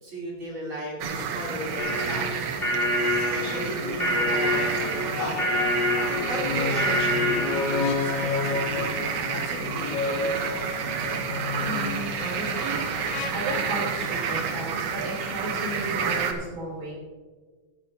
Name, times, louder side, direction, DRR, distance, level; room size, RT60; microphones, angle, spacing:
voice 1, 0.0-2.9 3.2-5.5 6.3-8.9 9.3-10.6, equal, 40° right, -4 dB, 3.7 m, -36 dB
sound 1, 1.0-16.3, right 6 dB, 65° right, 1.9 m, -30 dB
sound 2, 1.8-7.9, equal, 20° left, 3.3 m, -26 dB
sound 3, 3.8-4.0 5.1-13.3, left 5 dB, 75° left, 2.1 m, -31 dB
voice 2, 11.6-12.8 13.1-16.9, right 1 dB, 90° right, -3 dB, 4.9 m, -34 dB
17.0 x 9.7 x 2.8 m, 1.4 s
omnidirectional pair, 3.4 m